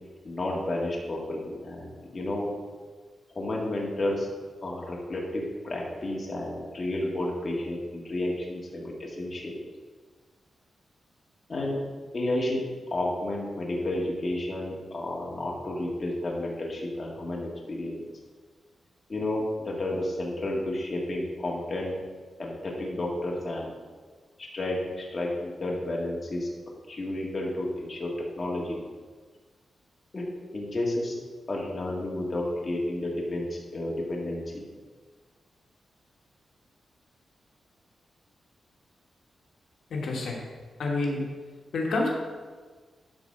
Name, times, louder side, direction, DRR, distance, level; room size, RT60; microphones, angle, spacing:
voice 1, 0.2-2.5 3.4-4.3 4.6-9.6 11.5-11.8 12.1-18.0 19.1-21.9 22.4-23.7 24.4-26.5 26.9-28.8 30.1-31.2 31.5-34.6, left 1 dB, 30° left, -3 dB, 1.8 m, -31 dB
voice 2, 39.9-40.4 40.8-41.3 41.7-42.1, left 2 dB, 70° left, -1 dB, 1.5 m, -28 dB
11.5 x 4.1 x 6.7 m, 1.5 s
wide cardioid pair, 150°, 0 cm